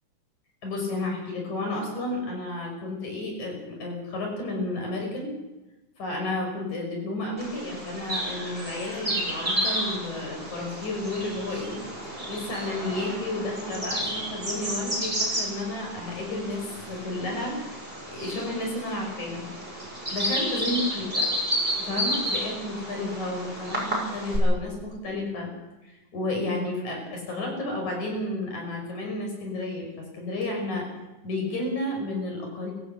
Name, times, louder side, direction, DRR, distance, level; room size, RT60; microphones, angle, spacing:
voice 1, 0.6-5.3 6.0-11.8 12.3-16.6 16.9-19.4 20.1-21.3 21.8-25.5 25.9-30.9 31.2-32.7, left 2 dB, 70° left, 1 dB, 7.0 m, -32 dB
Bird vocalization bird call bird song, 7.4-24.4, equal, 15° right, 6.5 m, -32 dB
24.0 x 15.0 x 8.1 m, 1.1 s
omnidirectional pair, 3.4 m